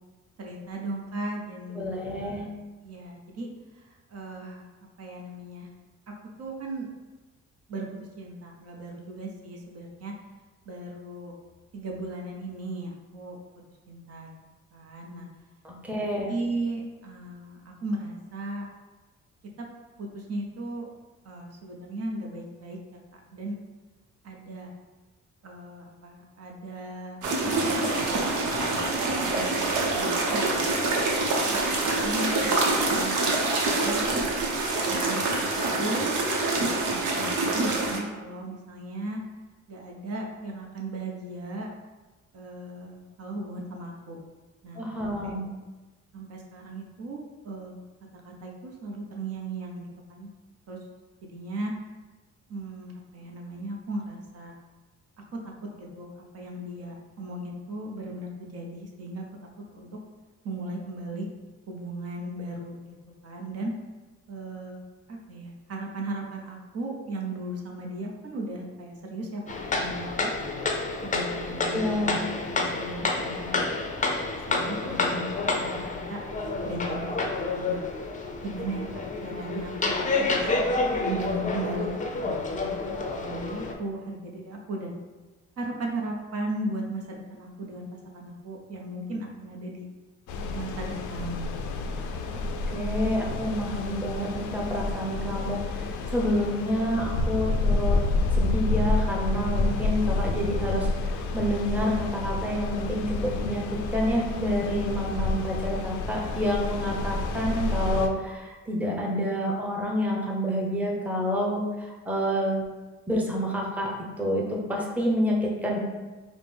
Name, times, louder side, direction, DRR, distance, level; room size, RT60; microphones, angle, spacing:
voice 1, 0.4-2.5 2.8-3.5 3.7-4.7 5.0-5.7 6.4-6.9 7.7-7.9 8.2-10.1 10.7-11.3 11.7-13.4 13.9-14.3 14.7-15.3 16.3-18.7 19.6-19.7 20.0-20.9 21.2-22.8 23.1-23.6 24.2-24.7 25.4-28.7 29.0-30.7 31.5-32.6 32.9-33.4 33.7-34.0 34.9-35.5 35.8-36.2 36.9-39.2 39.7-41.7 42.3-44.2 44.6-45.4 46.1-47.8 48.2-50.3 50.7-50.8 51.3-51.7 52.5-54.5 55.7-59.2 59.7-60.0 60.4-61.3 61.7-63.0 63.2-63.7 64.3-64.8 65.1-69.4 69.7-70.3 71.0-72.2 72.5-73.7 74.5-76.2 76.6-77.2 77.5-77.8 78.4-80.7 81.0-82.8 83.1-84.9 85.6-89.9 90.5-91.5 92.0-92.1, right 2 dB, 55° right, 0 dB, 0.7 m, -36 dB
voice 2, 1.7-2.4 15.6-16.3 44.8-45.5 71.7-72.2 92.7-95.6 96.1-98.0 98.4-100.9 101.3-103.6 103.9-111.6 112.1-112.6 113.1-113.9 114.2-115.8, equal, 5° right, -2 dB, 0.7 m, -28 dB
sound 1, 27.2-38.0, right 2 dB, 90° right, 0.8 m, -26 dB
sound 2, 69.5-83.7, left 3 dB, 25° left, 0.5 m, -29 dB
sound 3, 90.3-108.1, left 3 dB, 80° left, 0.5 m, -29 dB
5.1 x 2.1 x 3.3 m, 1.2 s
cardioid pair, 90°, 30 cm